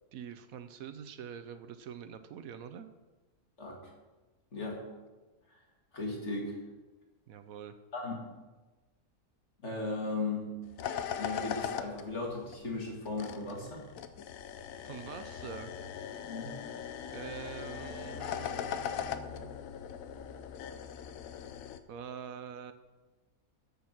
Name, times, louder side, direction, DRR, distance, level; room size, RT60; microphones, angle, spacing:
voice 1, 0.1-2.9 7.3-7.7 14.8-15.7 17.1-19.5 21.9-22.7, right 8 dB, 70° right, 10 dB, 1.1 m, -45 dB
voice 2, 4.5-4.8 5.9-6.6 7.9-8.1 9.6-10.5 11.2-13.8 16.3-16.5, left 3 dB, 50° left, -1 dB, 2.5 m, -36 dB
sound 1, 10.6-21.8, left 8 dB, 70° left, 1.0 m, -40 dB
13.5 x 5.4 x 5.9 m, 1.2 s
omnidirectional pair, 1.6 m